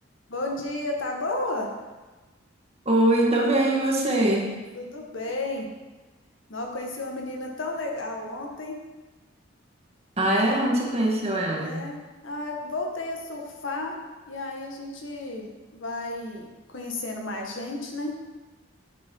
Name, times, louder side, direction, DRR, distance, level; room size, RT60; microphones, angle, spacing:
voice 1, 0.3-1.7 4.7-5.7 6.5-8.8 11.6-14.0 14.3-18.1, left 2 dB, 75° left, 1 dB, 1.9 m, -33 dB
voice 2, 2.9-4.6 10.2-11.9, right 1 dB, 30° right, -1 dB, 2.0 m, -22 dB
10.0 x 9.0 x 4.7 m, 1.2 s
head